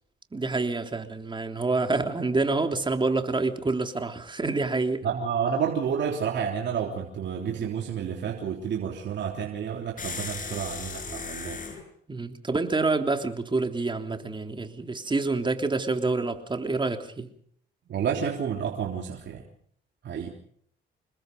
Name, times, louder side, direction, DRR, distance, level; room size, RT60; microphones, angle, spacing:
voice 1, 0.3-5.0 12.1-17.3, right 3 dB, 25° right, 3.2 m, -27 dB
voice 2, 5.0-11.6 17.9-19.4 20.0-20.3, right 7 dB, 65° right, 3.4 m, -30 dB
sound 1, 10.0-11.8, left 4 dB, 40° left, 7.0 m, -36 dB
27.5 x 21.5 x 5.3 m
cardioid pair, 90°, 20 cm